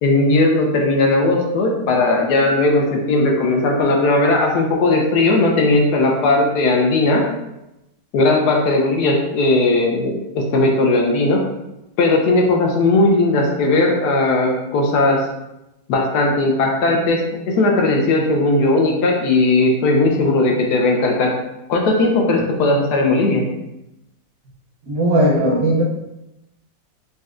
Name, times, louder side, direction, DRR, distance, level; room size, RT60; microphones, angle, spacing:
voice 1, 0.0-7.2 8.1-11.4 12.0-15.3 15.9-21.3 21.7-23.4, left 2 dB, 75° left, 0 dB, 1.1 m, -17 dB
voice 2, 24.9-25.8, right 1 dB, 65° right, -5 dB, 0.9 m, -17 dB
4.1 x 2.2 x 2.4 m, 0.91 s
omnidirectional pair, 1.9 m